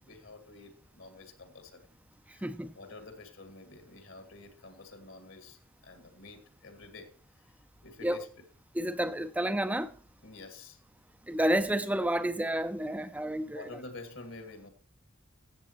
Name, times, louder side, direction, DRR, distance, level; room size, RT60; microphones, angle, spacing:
voice 1, 0.0-1.9 2.3-7.1 7.8-8.3 10.2-10.8 13.4-14.7, left 3 dB, 70° left, 1.9 m, -49 dB
voice 2, 2.4-2.7 8.0-8.2 8.8-9.9 11.3-13.6, right 1 dB, 5° right, 0.5 m, -30 dB
14.5 x 8.1 x 3.0 m
head